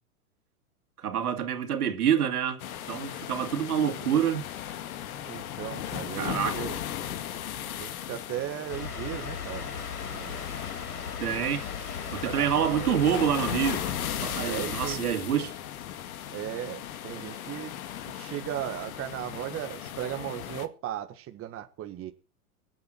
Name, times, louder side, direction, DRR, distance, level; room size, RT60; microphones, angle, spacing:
voice 1, 1.0-2.6 2.9-4.5 6.1-6.7 11.2-11.7 12.1-13.8 14.2-15.5, right 9 dB, 80° right, 3.1 m, -27 dB
sound 1, 2.6-20.7, left 11 dB, 70° left, 2.0 m, -37 dB
voice 2, 5.3-6.8 7.8-9.7 10.1-10.5 12.1-13.0 14.3-15.5 16.3-17.7 18.0-22.1, right 12 dB, 30° right, 1.7 m, -37 dB
sound 2, 8.7-15.0, left 6 dB, 90° left, 4.9 m, -38 dB
23.0 x 9.1 x 4.6 m
hypercardioid pair, 115°, 44 cm